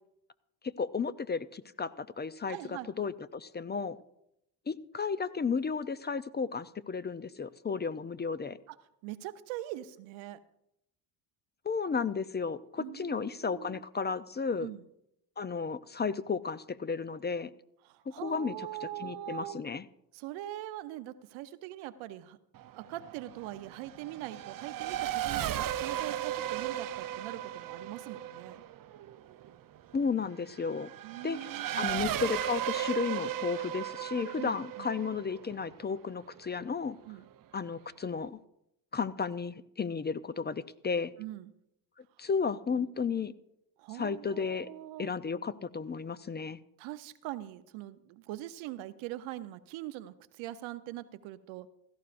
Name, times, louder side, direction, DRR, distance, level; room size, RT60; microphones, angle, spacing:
voice 1, 0.8-4.0 4.7-8.6 11.6-14.7 15.4-17.5 18.2-18.5 18.8-19.9 29.9-30.9 31.2-31.4 31.8-37.0 37.5-38.4 38.9-41.1 42.2-43.3 43.9-44.7 45.0-46.6, left 5 dB, 20° left, 15 dB, 0.5 m, -33 dB
voice 2, 2.5-3.1 8.7-8.8 9.0-10.4 12.8-13.8 14.6-14.9 17.9-19.6 20.1-22.4 22.7-28.6 31.0-31.9 34.4-34.9 37.1-37.3 41.2-41.5 43.8-45.1 46.8-51.7, right 14 dB, 80° right, 12 dB, 0.8 m, -42 dB
Race car auto racing / Accelerating revving vroom, 22.5-36.6, right 12 dB, 45° right, 0.7 m, -36 dB
16.5 x 14.0 x 2.6 m, 0.81 s
supercardioid pair, 65°, 46 cm